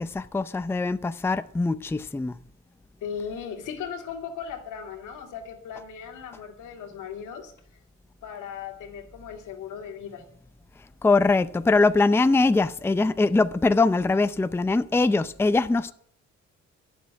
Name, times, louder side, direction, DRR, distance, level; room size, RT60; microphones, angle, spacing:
voice 1, 0.0-2.4 11.0-15.9, left 3 dB, 10° left, 0.5 m, -22 dB
voice 2, 3.0-7.8 8.2-10.3, left 7 dB, 85° left, 2.3 m, -37 dB
10.0 x 7.5 x 8.5 m
cardioid pair, 90°, 30 cm